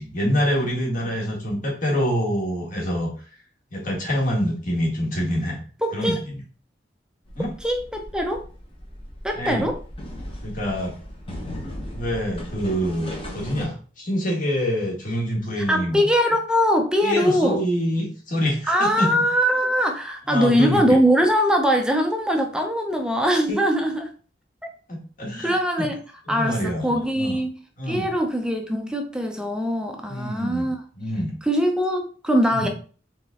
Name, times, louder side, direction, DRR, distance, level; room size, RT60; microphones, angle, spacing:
voice 1, 0.0-3.1 3.7-5.6 5.9-6.4 7.3-7.5 9.3-9.7 10.4-10.9 11.9-16.0 17.0-19.1 20.3-20.8 23.5-23.6 24.9-25.9 26.3-27.4 27.8-28.1 30.1-30.7 31.0-31.3 32.5-32.7, equal, 45° left, -2 dB, 1.7 m, -26 dB
voice 2, 5.8-6.2 7.6-8.4 9.2-9.8 15.7-17.6 18.7-24.1 25.4-26.0 26.3-27.5 27.9-30.8 31.5-32.7, equal, 5° right, 3 dB, 0.5 m, -22 dB
sound 1, 7.2-13.6, equal, 30° left, 1.0 m, -37 dB
3.8 x 3.8 x 3.6 m, 0.40 s
head